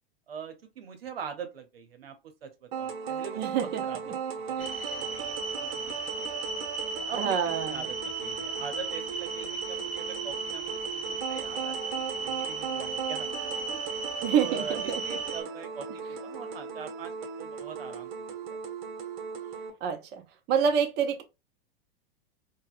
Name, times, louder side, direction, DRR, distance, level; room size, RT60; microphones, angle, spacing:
voice 1, 0.3-2.1 2.4-4.1 4.5-6.2 7.1-17.1 17.4-18.1 18.5-18.6, right 6 dB, 90° right, 0.8 m, -43 dB
sound 1, 2.7-19.7, right 6 dB, 60° right, 1.0 m, -37 dB
voice 2, 3.4-4.1 4.6-5.0 7.1-7.9 14.2-15.0 19.8-20.2 20.5-21.2, right 7 dB, 35° right, 0.7 m, -28 dB
sound 2, 4.6-15.4, right 4 dB, 20° right, 1.3 m, -36 dB
3.9 x 2.2 x 2.4 m
hypercardioid pair, 110°, 29 cm